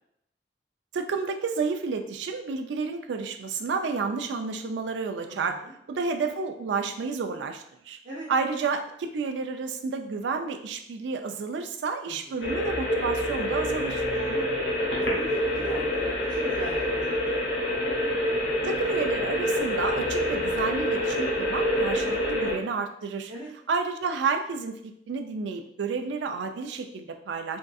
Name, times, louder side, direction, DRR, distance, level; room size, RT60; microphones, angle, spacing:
voice 1, 0.9-5.6 5.9-8.0 8.3-14.0 18.6-23.3 23.7-27.6, right 4 dB, 85° right, 6 dB, 0.3 m, -30 dB
voice 2, 5.3-5.7 8.0-8.3 12.1-12.5 14.1-14.5 15.1-17.3 21.6-22.0 23.3-23.5, right 1 dB, 45° right, -7 dB, 0.6 m, -39 dB
sound 1, 12.4-22.5, equal, 75° left, 0.9 m, -27 dB
3.5 x 2.5 x 2.3 m, 0.74 s
head